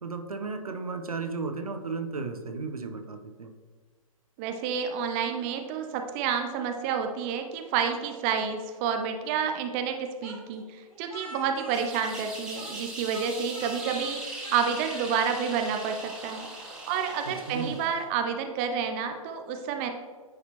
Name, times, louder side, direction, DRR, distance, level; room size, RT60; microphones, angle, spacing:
voice 1, 0.0-3.6 17.3-17.8, right 4 dB, 80° right, 6 dB, 0.8 m, -34 dB
voice 2, 4.4-14.2 14.5-16.5 16.9-19.9, right 7 dB, 20° right, 5 dB, 0.4 m, -29 dB
Speech, 10.2-12.8 13.1-14.1 14.4-15.2, left 1 dB, 75° left, 1.8 m, -44 dB
sound 1, 11.7-18.0, right 2 dB, 5° right, 1.0 m, -40 dB
9.5 x 4.2 x 2.9 m, 1.5 s
figure-of-eight pair, 130°, 18 cm